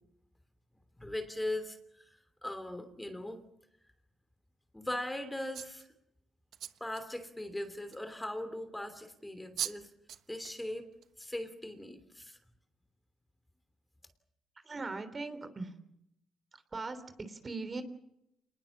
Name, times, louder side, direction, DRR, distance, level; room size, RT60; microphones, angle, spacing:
voice 1, 1.0-3.4 4.7-5.9 6.8-9.9 10.3-10.9 11.2-12.4, left 1 dB, 10° left, 9 dB, 3.0 m, -39 dB
sound 1, 5.5-5.9 6.5-7.0 7.9-8.0 9.2-9.3 9.6-9.8 10.1-10.6 11.0-11.3, right 10 dB, 70° right, 1.1 m, -39 dB
voice 2, 14.6-15.8 16.5-17.8, right 3 dB, 30° right, 10 dB, 3.5 m, -40 dB
27.0 x 20.5 x 7.4 m, 0.80 s
cardioid pair, 90°, 0 cm